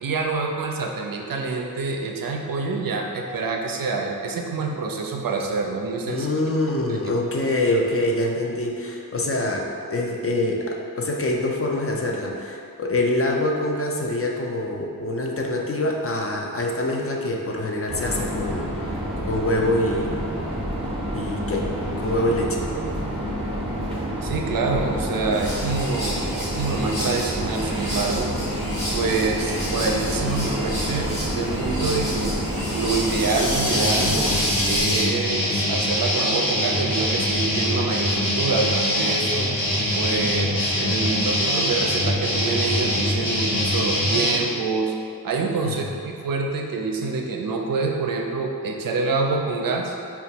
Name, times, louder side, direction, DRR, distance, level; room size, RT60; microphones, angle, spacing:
voice 1, 0.0-6.3 6.9-7.0 24.2-28.3 28.9-32.4 32.7-34.1 34.7-39.5 39.9-44.9 45.2-50.0, right 4 dB, 65° right, 2 dB, 0.5 m, -26 dB
voice 2, 6.1-18.9 19.3-20.3 21.1-21.7 22.0-22.6 45.6-45.8, left 1 dB, 40° left, 0 dB, 0.4 m, -25 dB
sound 1, 17.9-34.4, equal, 15° right, 0.6 m, -28 dB
sound 2, 25.3-35.0, equal, 80° left, 1.2 m, -29 dB
sound 3, 33.7-44.4, left 1 dB, 60° left, 0.9 m, -23 dB
4.3 x 2.3 x 2.8 m, 2.4 s
wide cardioid pair, 55°, 38 cm